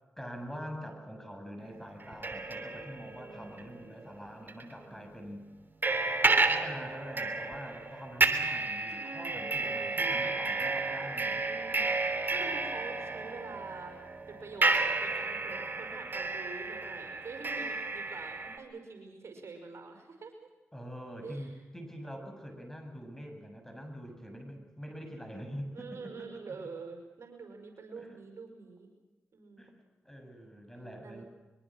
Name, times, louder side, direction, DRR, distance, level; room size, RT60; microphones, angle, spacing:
voice 1, 0.2-5.4 6.5-11.4 20.7-26.3 26.6-26.7 27.9-28.2 29.6-31.2, equal, 5° left, 4 dB, 8.0 m, -44 dB
sound 1, 2.0-4.1 4.5-4.6 5.8-18.6, right 3 dB, 40° right, 3.0 m, -31 dB
voice 2, 3.2-3.7 4.8-5.2 8.9-10.4 11.4-13.9 14.3-20.5 21.2-21.6 25.7-28.9 29.3-29.8 31.0-31.2, right 4 dB, 65° right, 4 dB, 5.5 m, -46 dB
23.0 x 23.0 x 6.4 m, 1.2 s
supercardioid pair, 45°, 5 cm